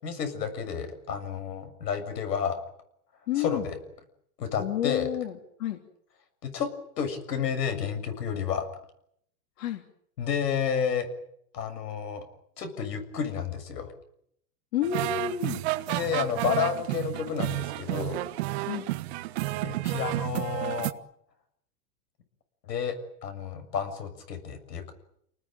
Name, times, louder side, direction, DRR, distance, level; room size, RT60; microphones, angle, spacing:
voice 1, 0.0-2.6 3.4-3.8 4.4-5.1 6.4-6.7 7.0-8.7 10.2-11.1 11.5-12.2 12.6-13.9 15.9-18.2 19.6-20.9 22.7-23.0 23.2-24.9, left 7 dB, 85° left, 9 dB, 7.2 m, -31 dB
voice 2, 3.3-3.6 4.6-5.8 9.6-9.8 14.7-15.6 18.7-18.8, left 12 dB, 55° left, 5 dB, 3.3 m, -30 dB
sound 1, 14.8-20.9, right 16 dB, 40° right, 1.4 m, -31 dB
29.0 x 20.0 x 9.1 m, 0.71 s
supercardioid pair, 165°, 48 cm